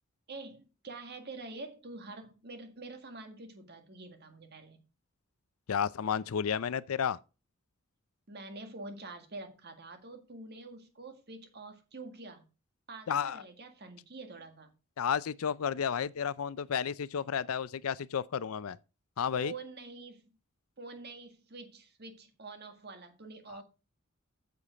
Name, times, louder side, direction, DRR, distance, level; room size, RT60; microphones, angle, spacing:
voice 1, 0.3-4.8 8.3-12.5 12.9-14.7 19.3-20.3 20.8-23.6, right 3 dB, 50° right, 1.9 m, -46 dB
voice 2, 5.7-7.2 13.1-13.4 15.0-18.8 19.2-19.5 23.5-23.6, left 7 dB, 80° left, 0.5 m, -32 dB
8.2 x 7.1 x 5.0 m
head